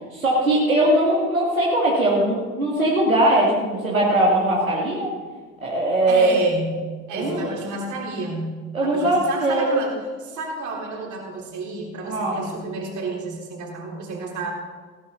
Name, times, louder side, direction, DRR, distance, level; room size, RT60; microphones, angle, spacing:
voice 1, 0.1-5.1 5.6-6.4 7.1-7.5 8.7-9.8 12.0-12.4, right 1 dB, 85° right, -5 dB, 2.2 m, -20 dB
voice 2, 6.1-6.8 7.1-14.5, right 3 dB, 45° right, -1 dB, 3.9 m, -31 dB
16.5 x 13.5 x 4.1 m, 1.4 s
figure-of-eight pair, 60°, 40 cm